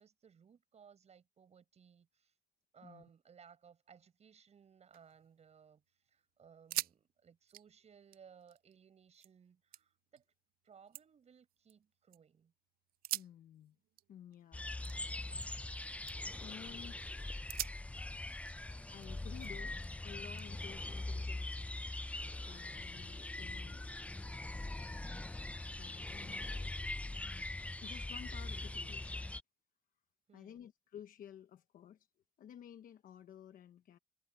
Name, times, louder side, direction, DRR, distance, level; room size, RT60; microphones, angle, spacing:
voice 1, 0.0-2.3 2.7-10.2 10.6-12.5 30.3-30.6, right 7 dB, 40° right, 6.3 m, -62 dB
sound 1, 4.7-5.7 6.1-6.2 6.5-7.0 7.3-9.3 9.7-10.2 10.7-12.2 12.9-15.7 16.0-16.4 16.9-17.0 17.5-19.7 20.4-21.5, right 16 dB, 60° right, 0.4 m, -46 dB
voice 2, 13.1-13.8 14.1-14.7 16.4-17.2 18.9-19.8 20.0-21.6 22.4-23.8 25.8-26.5 27.7-29.2 30.3-32.1 32.4-34.0, left 9 dB, 55° left, 1.2 m, -53 dB
sound 2, 14.5-29.4, left 2 dB, 10° left, 0.6 m, -42 dB
cardioid pair, 110°, 17 cm